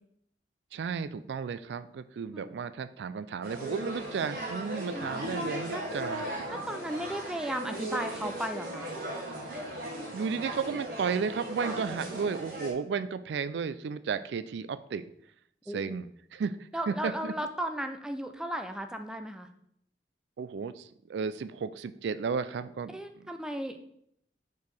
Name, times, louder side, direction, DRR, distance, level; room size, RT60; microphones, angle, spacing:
voice 1, 0.7-6.3 10.1-15.0 15.7-17.3 20.4-23.0, right 6 dB, 75° right, 13 dB, 0.3 m, -33 dB
sound 1, 3.4-12.7, right 1 dB, 55° right, 1.8 m, -37 dB
voice 2, 4.9-5.4 5.7-5.8 6.5-8.9 12.1-12.2 15.7-16.0 16.7-19.5 22.9-23.8, right 1 dB, 5° right, 6 dB, 0.4 m, -35 dB
4.8 x 4.6 x 5.2 m, 0.71 s
head